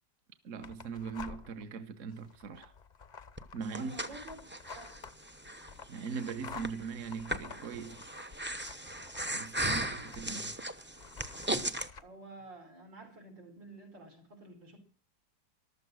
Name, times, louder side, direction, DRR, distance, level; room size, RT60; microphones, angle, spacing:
voice 1, 0.4-2.7 3.5-3.9 5.9-8.1 9.3-9.8 10.2-10.4, right 5 dB, 50° right, 1.3 m, -40 dB
sound 1, 0.6-1.7 2.1-10.5 11.0-12.0, left 5 dB, 45° left, 0.6 m, -50 dB
Breathing, 3.4-11.9, right 1 dB, 15° right, 0.3 m, -38 dB
voice 2, 3.7-4.4 4.7-4.9 9.7-10.4 12.0-14.8, right 2 dB, 75° right, 5.7 m, -50 dB
14.5 x 12.5 x 6.2 m
omnidirectional pair, 2.0 m